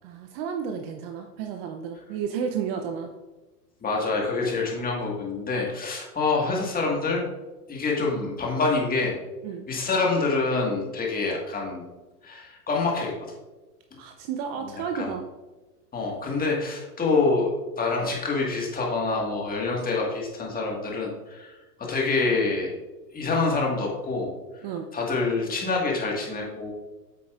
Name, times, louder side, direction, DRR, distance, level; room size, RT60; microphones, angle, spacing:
voice 1, 0.0-3.1 9.4-9.7 14.0-15.2 24.6-24.9, right 7 dB, 40° right, 5 dB, 0.6 m, -32 dB
voice 2, 3.8-7.2 7.7-9.2 9.7-11.8 12.2-13.3 14.6-15.2 15.9-22.7 23.1-24.3 24.9-26.7, left 3 dB, 20° left, -1 dB, 1.6 m, -26 dB
8.0 x 6.1 x 2.4 m, 1.1 s
hypercardioid pair, 110°, 48 cm